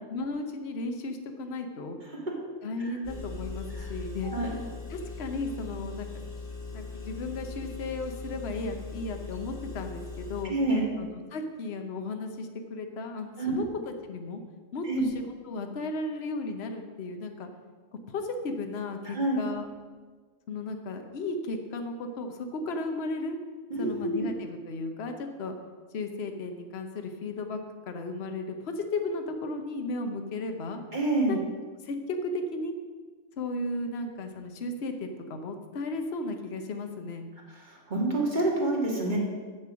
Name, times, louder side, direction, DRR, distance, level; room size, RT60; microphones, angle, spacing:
voice 1, 0.1-2.0 2.6-4.3 4.9-6.1 6.7-10.5 11.0-14.4 14.7-15.1 15.4-17.5 18.1-19.7 20.5-23.4 23.8-25.5 25.9-27.6 27.9-30.8 31.3-31.4 31.8-32.7 33.4-37.2, left 2 dB, 60° left, 5 dB, 1.1 m, -35 dB
Engine, 3.0-10.4, left 3 dB, 80° left, 2.9 m, -40 dB
voice 2, 10.4-10.9 13.4-13.6 14.8-15.0 19.1-19.4 23.7-24.3 30.9-31.4 37.7-39.2, right 2 dB, 40° right, -2 dB, 2.1 m, -27 dB
7.5 x 7.3 x 6.2 m, 1.5 s
omnidirectional pair, 1.3 m